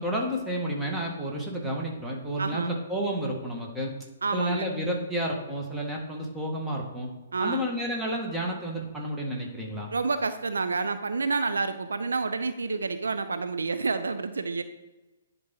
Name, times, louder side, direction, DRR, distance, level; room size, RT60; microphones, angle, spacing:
voice 1, 0.0-3.9 4.3-7.1 7.4-9.9, equal, 5° right, -1 dB, 1.5 m, -31 dB
voice 2, 2.4-2.8 4.2-4.7 7.3-7.7 9.9-14.6, right 4 dB, 70° right, 9 dB, 0.4 m, -29 dB
10.5 x 4.0 x 3.8 m, 1.1 s
figure-of-eight pair, 125°, 0 cm